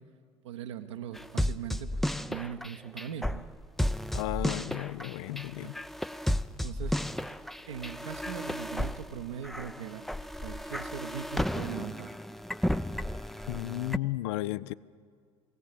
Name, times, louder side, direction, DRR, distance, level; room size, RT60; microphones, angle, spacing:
voice 1, 0.4-3.5 5.6-5.7 6.6-7.0 7.7-10.0 10.4-12.1, right 8 dB, 70° right, 0.8 m, -40 dB
sound 1, 1.1-14.0, equal, ahead, 0.4 m, -33 dB
voice 2, 4.1-5.8 13.5-14.7, left 16 dB, 60° left, 0.4 m, -34 dB
19.5 x 17.0 x 8.2 m
figure-of-eight pair, 60°, 16 cm